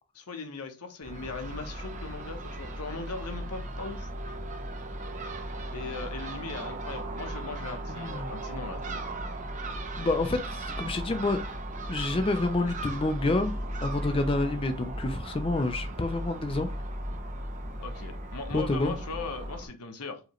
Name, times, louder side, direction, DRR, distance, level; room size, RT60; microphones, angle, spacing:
voice 1, 0.1-4.1 5.7-9.0 17.8-20.2, left 4 dB, 90° left, 0.9 m, -39 dB
Crow / Gull seagull, 1.0-19.7, right 1 dB, 35° right, 0.7 m, -36 dB
voice 2, 7.9-8.3 10.0-11.4 11.9-13.5 13.8-16.7 18.5-19.0, left 2 dB, 25° left, 0.4 m, -28 dB
4.8 x 2.9 x 3.0 m
head